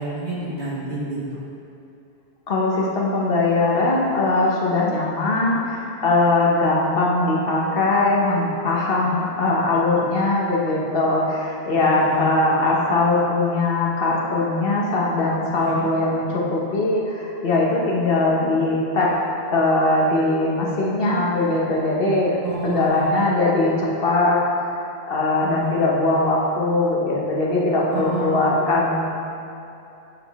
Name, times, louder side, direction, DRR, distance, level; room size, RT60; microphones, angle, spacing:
voice 1, 0.0-1.4 9.0-9.2 11.9-12.3 15.6-15.9 18.5-18.7 22.4-23.1 25.6-25.7 27.9-28.5, right 1 dB, 70° right, -7 dB, 1.6 m, -29 dB
voice 2, 2.5-19.1 19.5-22.3 22.6-24.4 25.1-29.1, left 2 dB, 65° left, -4 dB, 1.1 m, -20 dB
8.9 x 3.7 x 3.5 m, 2.7 s
omnidirectional pair, 1.0 m